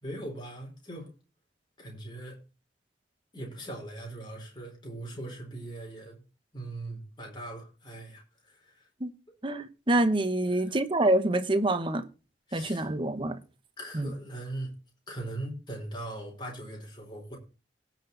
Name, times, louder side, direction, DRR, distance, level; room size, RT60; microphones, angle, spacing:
voice 1, 0.0-1.1 1.8-2.4 3.3-6.2 6.5-8.9 10.5-10.8 12.5-12.9 13.8-14.7 15.1-17.4, right 1 dB, 25° left, 4.2 m, -40 dB
voice 2, 9.4-12.0 12.5-13.4 13.9-14.1, right 1 dB, 30° right, 1.0 m, -26 dB
17.5 x 6.0 x 4.0 m
head